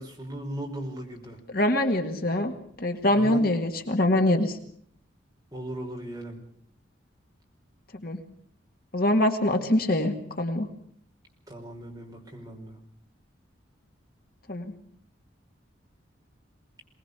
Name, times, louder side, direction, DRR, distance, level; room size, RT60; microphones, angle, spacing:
voice 1, 0.0-1.4 3.1-3.4 5.5-6.4 11.5-12.7, right 1 dB, 20° right, 0 dB, 5.1 m, -37 dB
voice 2, 1.5-2.5 2.8-4.6 8.0-8.2 8.9-10.7 14.5-14.7, left 1 dB, 50° left, 5 dB, 1.9 m, -24 dB
24.0 x 19.5 x 6.8 m, 0.63 s
head